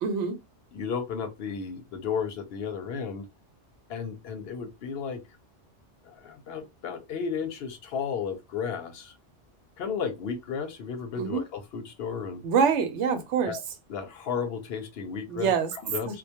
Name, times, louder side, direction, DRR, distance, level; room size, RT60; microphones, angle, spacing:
voice 1, 0.0-0.4 11.1-11.4 12.4-13.6 15.3-15.7 16.1-16.2, right 6 dB, 85° right, 0.9 m, -25 dB
voice 2, 0.7-3.3 3.9-5.2 6.0-9.1 9.8-12.4 13.5-13.6 13.9-15.5 15.8-16.2, left 6 dB, 65° left, 0.7 m, -33 dB
2.2 x 2.1 x 2.7 m
omnidirectional pair, 1.2 m